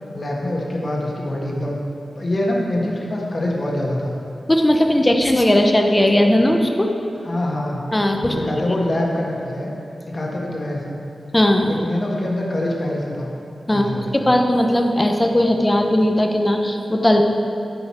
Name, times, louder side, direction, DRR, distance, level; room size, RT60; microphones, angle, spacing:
voice 1, 0.1-1.8 2.1-4.1 7.2-7.8 8.2-9.7 10.0-11.0 11.6-13.3 13.7-14.3, left 1 dB, 35° left, -2 dB, 1.5 m, -24 dB
voice 2, 4.5-6.9 7.9-8.4 11.3-11.8 13.7-13.9 14.1-17.2, left 1 dB, 15° left, 3 dB, 0.7 m, -17 dB
10.5 x 5.5 x 4.4 m, 2.8 s
wide cardioid pair, 95°, 0 cm